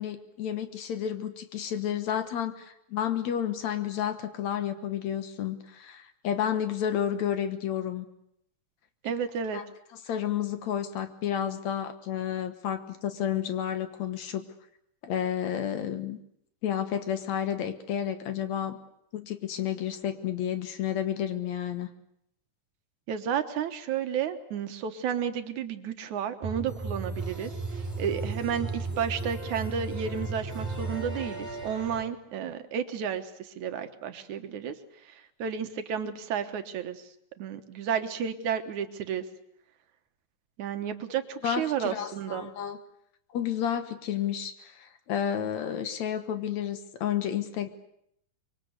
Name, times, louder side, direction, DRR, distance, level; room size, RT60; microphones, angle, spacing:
voice 1, 0.0-8.1 9.5-9.6 10.1-14.4 15.0-16.2 16.6-18.8 19.1-21.9 41.4-42.8 43.3-47.7, left 9 dB, 65° left, 10 dB, 2.5 m, -31 dB
voice 2, 9.0-9.6 23.1-27.5 28.0-34.7 35.1-37.1 37.4-39.2 40.6-42.5, right 8 dB, 70° right, 9 dB, 2.5 m, -32 dB
sound 1, 26.4-32.0, right 3 dB, 20° right, 6.0 m, -35 dB
24.5 x 23.5 x 8.1 m, 0.73 s
omnidirectional pair, 3.7 m